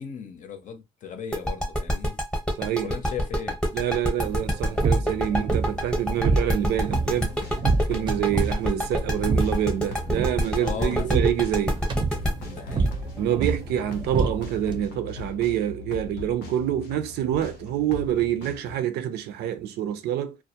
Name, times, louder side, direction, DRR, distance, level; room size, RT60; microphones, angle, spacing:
voice 1, 0.0-2.2 2.8-3.6 10.6-11.3 12.3-12.9, left 7 dB, 50° left, 0.6 m, -37 dB
sound 1, 1.3-14.1, equal, 5° left, 0.8 m, -26 dB
voice 2, 2.6-2.9 3.7-7.4 7.9-11.8 13.2-20.4, right 10 dB, 75° right, 0.5 m, -26 dB
sound 2, 4.2-14.8, right 4 dB, 30° right, 0.5 m, -28 dB
Upbeat Funky Loop - Electronic, 6.8-18.8, left 5 dB, 90° left, 0.6 m, -40 dB
2.2 x 2.1 x 2.7 m
cardioid pair, 110°, 17 cm